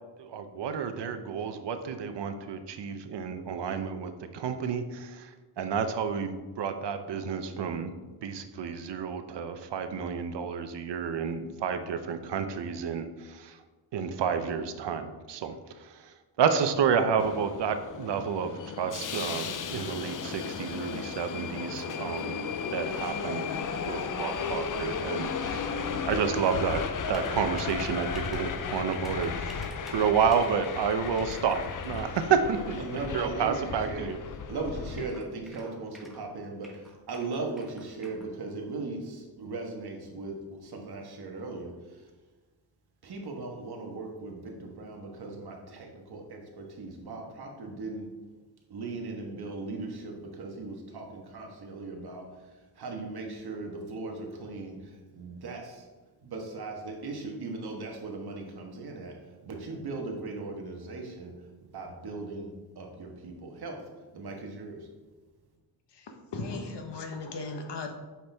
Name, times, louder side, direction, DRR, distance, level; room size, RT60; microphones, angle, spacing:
voice 1, 0.2-7.9 8.2-13.6 13.9-22.4 22.7-23.5 23.8-25.7 26.1-26.8 27.1-29.3 29.9-32.8 33.1-34.2, right 6 dB, 85° right, 9 dB, 0.8 m, -30 dB
Subway metro underground, 17.2-35.1, left 6 dB, 50° left, 0.6 m, -35 dB
sound 1, 25.8-26.0 26.7-32.3 33.0-33.2 34.1-34.2 34.4-34.5 34.9-36.3 36.6-38.2, right 1 dB, ahead, 1.2 m, -50 dB
voice 2, 32.8-34.1 34.5-42.0 43.0-48.1 48.7-52.3 52.8-55.9 56.2-59.2 59.4-61.3 61.7-64.9, right 3 dB, 65° right, 1 dB, 1.5 m, -38 dB
voice 3, 65.9-67.9, left 3 dB, 80° left, 4 dB, 1.2 m, -37 dB
8.3 x 6.0 x 3.5 m, 1.3 s
wide cardioid pair, 145°, 41 cm